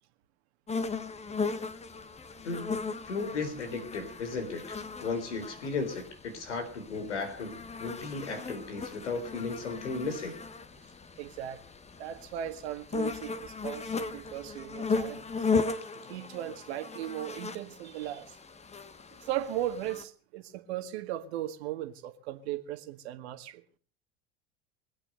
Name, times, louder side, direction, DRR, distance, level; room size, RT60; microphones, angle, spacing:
sound 1, 0.7-20.0, left 4 dB, 20° left, 1.5 m, -36 dB
voice 1, 2.4-2.8 3.1-10.4, left 4 dB, 80° left, 4.1 m, -35 dB
voice 2, 11.2-11.6 12.0-15.7 16.1-18.4 19.2-23.6, right 12 dB, 65° right, 2.0 m, -37 dB
22.5 x 8.8 x 6.7 m
hypercardioid pair, 80°, 35 cm